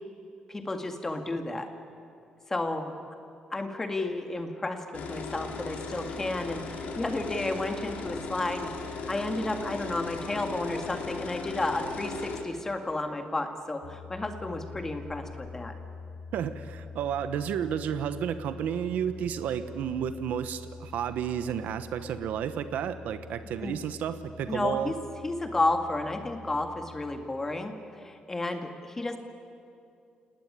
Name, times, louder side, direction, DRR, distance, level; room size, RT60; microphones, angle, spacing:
voice 1, 0.5-1.7 2.5-2.9 3.5-8.7 9.1-15.8 23.6-23.7 24.5-25.0 25.2-29.2, left 2 dB, 15° left, 6 dB, 2.1 m, -32 dB
sound 1, 4.9-12.4, left 4 dB, 70° left, 3.8 m, -37 dB
sound 2, 13.8-27.2, left 4 dB, 90° left, 3.1 m, -45 dB
voice 2, 16.3-24.9, right 8 dB, 85° right, 11 dB, 1.1 m, -32 dB
29.0 x 18.5 x 10.0 m, 2.5 s
cardioid pair, 155°, 3 cm